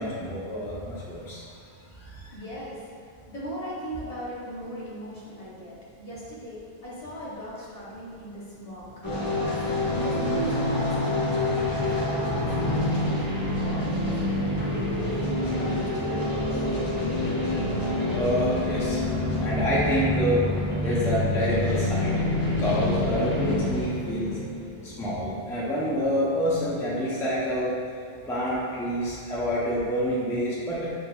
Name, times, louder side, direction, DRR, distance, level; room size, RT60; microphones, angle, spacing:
voice 1, 0.0-1.4 1.9-2.3 18.1-19.0 19.4-20.5 20.8-24.4 24.8-27.7 28.3-30.9, equal, 5° left, -8 dB, 0.5 m, -27 dB
voice 2, 2.3-2.9 3.3-11.5 11.7-15.1 15.5-16.7, equal, 40° left, -7 dB, 0.8 m, -39 dB
sound 1, 9.0-25.4, left 1 dB, 20° left, 1.2 m, -27 dB
6.0 x 2.5 x 2.2 m, 2.4 s
omnidirectional pair, 1.0 m